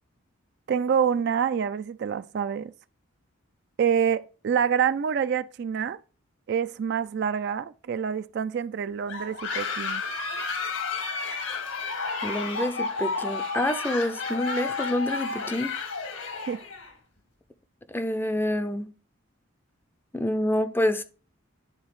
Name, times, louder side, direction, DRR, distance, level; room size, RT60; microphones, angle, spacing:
voice 1, 0.7-2.7 3.8-6.0 6.5-10.0 16.5-16.6, right 7 dB, 50° right, 0.3 m, -26 dB
sound 1, 9.1-16.9, left 4 dB, 85° left, 1.7 m, -31 dB
voice 2, 12.2-15.7 17.9-18.9 20.1-21.0, left 1 dB, 10° left, 0.4 m, -27 dB
10.5 x 4.0 x 3.1 m
head